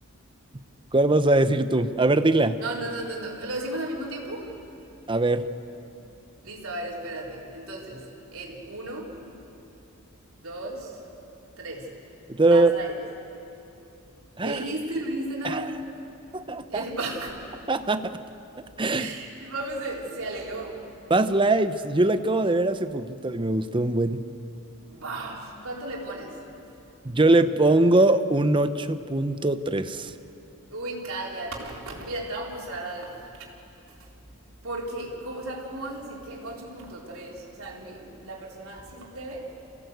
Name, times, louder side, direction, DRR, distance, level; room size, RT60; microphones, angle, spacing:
voice 1, 0.9-2.6 5.1-5.5 12.3-12.7 14.4-14.6 15.5-15.6 16.3-16.8 17.7-18.2 18.8-19.1 21.1-24.2 27.0-30.1, right 2 dB, 25° right, 11 dB, 0.8 m, -22 dB
voice 2, 2.6-4.5 6.4-9.1 10.4-10.9 11.6-11.9 12.5-12.9 14.4-15.8 16.7-17.4 18.9-20.8 24.9-26.4 30.7-33.4 34.6-39.5, right 2 dB, 75° right, -3 dB, 3.8 m, -35 dB
28.0 x 16.0 x 8.0 m, 2.8 s
head